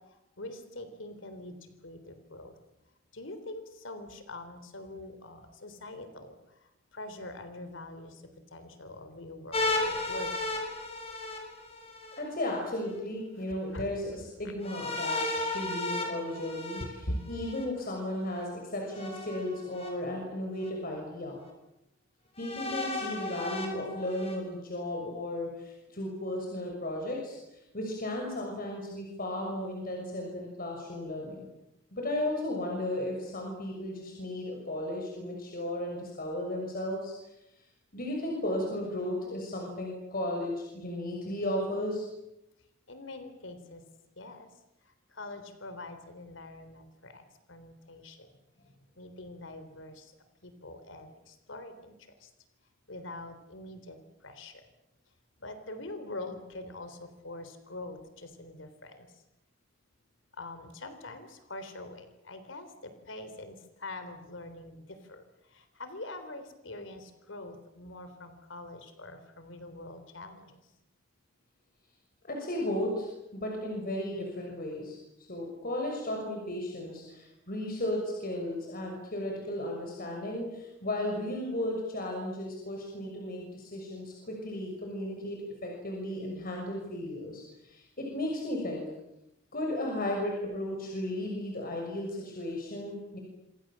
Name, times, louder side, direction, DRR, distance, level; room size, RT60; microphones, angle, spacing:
voice 1, 0.4-2.6 3.1-8.2 8.5-10.4 13.5-13.9 17.0-17.2 17.8-17.9 42.9-43.8 44.2-44.5 44.9-48.3 49.0-50.1 50.4-51.9 52.2-52.3 52.9-54.6 55.4-59.1 60.3-70.6, left 2 dB, 75° left, 9 dB, 3.6 m, -44 dB
sound 1, 9.5-12.2 14.6-17.6 18.9-19.9 20.6-20.7 22.4-24.4, left 2 dB, 30° left, 6.7 m, -34 dB
voice 2, 12.1-21.4 22.4-27.4 27.7-31.5 31.9-37.1 37.9-42.1 72.2-88.9 89.5-93.2, left 1 dB, 50° left, 0 dB, 6.5 m, -35 dB
27.5 x 26.5 x 7.6 m, 0.89 s
head